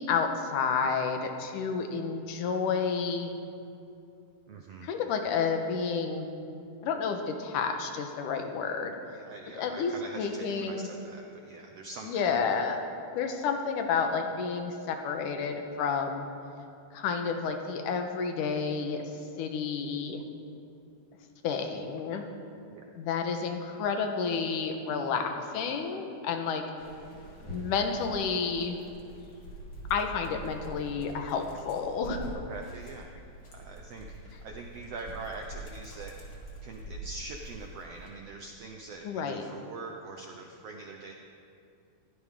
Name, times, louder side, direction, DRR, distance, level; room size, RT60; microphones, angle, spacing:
voice 1, 0.0-3.3 4.8-6.3 6.8-8.9 9.6-10.9 12.0-12.8 13.1-16.3 16.9-19.1 19.4-20.2 21.4-22.2 23.0-26.6 27.5-28.8 29.9-32.2 39.0-39.4, left 5 dB, 70° left, 5 dB, 2.5 m, -30 dB
voice 2, 4.5-4.9 9.1-12.2 22.7-22.8 32.5-33.1 33.5-36.1 36.6-41.1, right 3 dB, 85° right, 2 dB, 1.3 m, -43 dB
Dog, 26.8-38.1, right 1 dB, 40° left, 3.2 m, -44 dB
22.0 x 16.5 x 3.7 m, 2.6 s
omnidirectional pair, 4.1 m